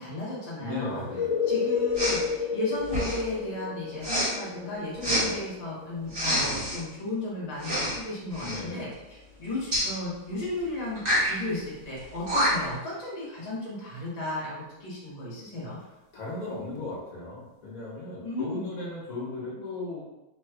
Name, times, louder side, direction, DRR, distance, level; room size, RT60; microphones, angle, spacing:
voice 1, 0.0-1.0 1.5-8.9 9.4-15.8 18.2-18.7, left 2 dB, 40° left, -7 dB, 0.6 m, -34 dB
voice 2, 0.6-1.3 5.0-5.4 8.3-8.9 15.8-20.0, left 2 dB, 55° left, -5 dB, 1.1 m, -36 dB
sound 1, 0.9-12.5 16.8-16.9, left 6 dB, 85° left, 1.4 m, -34 dB
Respiratory sounds, 1.9-2.2 2.8-3.3 4.0-4.3 5.0-5.2 6.1-6.8 7.6-8.0 8.3-8.6 9.7-9.9 11.0-11.3 12.0-12.1 12.3-12.7, equal, 30° right, 1.3 m, -27 dB
3.2 x 3.0 x 2.2 m, 0.98 s
omnidirectional pair, 2.0 m